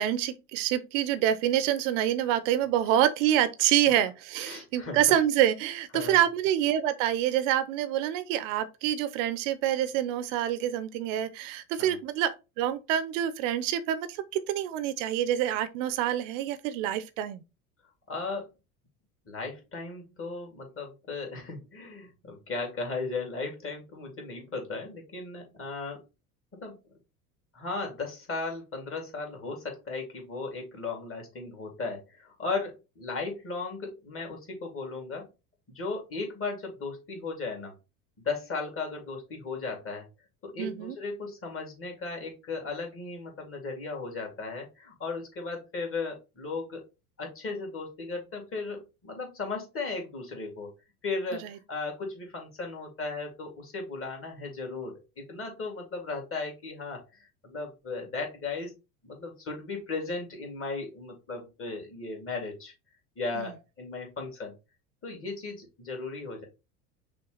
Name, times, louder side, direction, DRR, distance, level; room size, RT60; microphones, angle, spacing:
voice 1, 0.0-17.4 40.6-41.0 63.3-63.5, right 11 dB, 60° right, 0.8 m, -27 dB
voice 2, 4.4-5.0 5.9-6.2 11.8-12.0 18.1-18.5 19.3-26.0 26.6-26.8 27.5-35.3 35.7-37.7 38.2-40.1 40.4-46.8 47.2-50.7 51.0-58.7 59.0-62.7 63.2-64.5 65.0-66.4, left 3 dB, 30° left, 2.4 m, -36 dB
5.8 x 2.4 x 3.9 m
hypercardioid pair, 80°, 44 cm